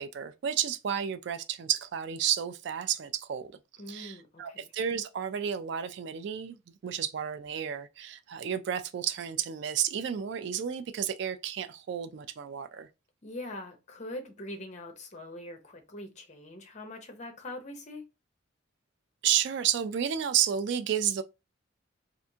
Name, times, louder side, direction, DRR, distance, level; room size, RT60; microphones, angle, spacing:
voice 1, 0.0-3.5 3.9-6.6 6.8-12.9 19.2-21.2, right 9 dB, 60° right, 0.3 m, -31 dB
voice 2, 3.8-4.7 13.2-18.0, left 1 dB, 35° left, 0.8 m, -42 dB
3.4 x 2.5 x 2.7 m
head